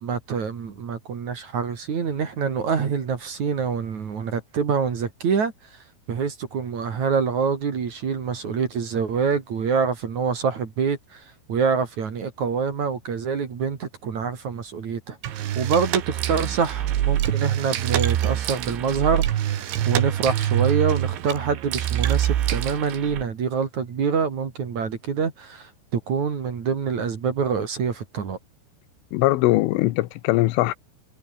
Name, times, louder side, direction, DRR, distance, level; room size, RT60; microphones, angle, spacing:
voice 1, 0.0-5.5 6.1-28.4, right 6 dB, 45° right, 3.3 m, -26 dB
sound 1, 15.2-23.2, right 12 dB, 75° right, 4.3 m, -25 dB
voice 2, 29.1-30.7, left 18 dB, 85° left, 3.5 m, -21 dB
omnidirectional pair, 5.6 m